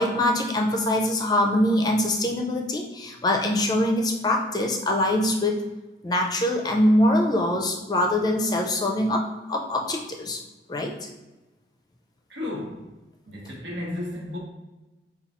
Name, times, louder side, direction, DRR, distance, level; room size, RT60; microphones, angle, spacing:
voice 1, 0.0-5.6 6.0-10.4 10.7-10.9, left 1 dB, 20° left, 2 dB, 0.4 m, -23 dB
voice 2, 12.3-12.9 13.3-14.4, left 1 dB, 85° right, -2 dB, 1.2 m, -33 dB
4.4 x 2.3 x 4.1 m, 1.1 s
head